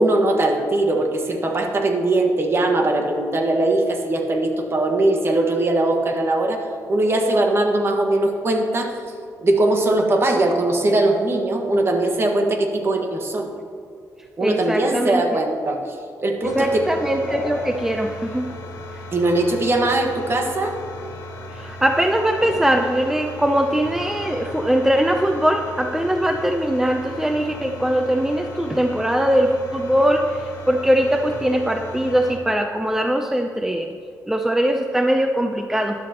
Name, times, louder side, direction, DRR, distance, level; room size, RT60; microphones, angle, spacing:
voice 1, 0.0-6.6 6.9-8.9 9.4-13.5 14.4-16.8 19.1-20.8, right 2 dB, 40° right, 3 dB, 1.6 m, -20 dB
voice 2, 14.4-15.4 16.4-18.5 18.9-19.0 21.5-33.9 34.3-36.0, right 1 dB, 5° right, 4 dB, 0.6 m, -21 dB
sound 1, 16.4-32.4, left 2 dB, 55° left, 2.3 m, -36 dB
13.0 x 11.5 x 3.0 m, 2.4 s
cardioid pair, 95°, 7 cm